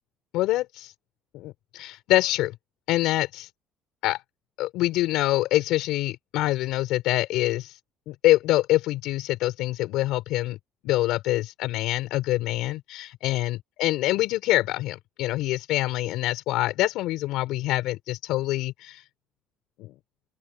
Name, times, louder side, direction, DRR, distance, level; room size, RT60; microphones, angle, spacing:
voice 1, 0.3-0.9 1.3-2.5 2.9-3.5 4.0-4.2 4.6-7.8 8.1-10.6 10.8-19.0 19.8-19.9, left 16 dB, 75° left, 4.0 m, -25 dB
open air
cardioid pair, 100°, 0 cm